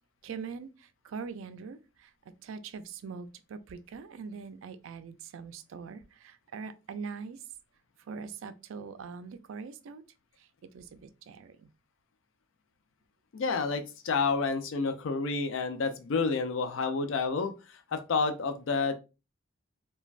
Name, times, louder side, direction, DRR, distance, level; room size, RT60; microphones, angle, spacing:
voice 1, 0.2-2.1 2.4-7.4 8.1-10.0 10.7-11.7, right 5 dB, 75° right, 0.3 m, -42 dB
voice 2, 13.3-18.9, left 4 dB, 70° left, 0.4 m, -29 dB
3.1 x 2.2 x 2.4 m
head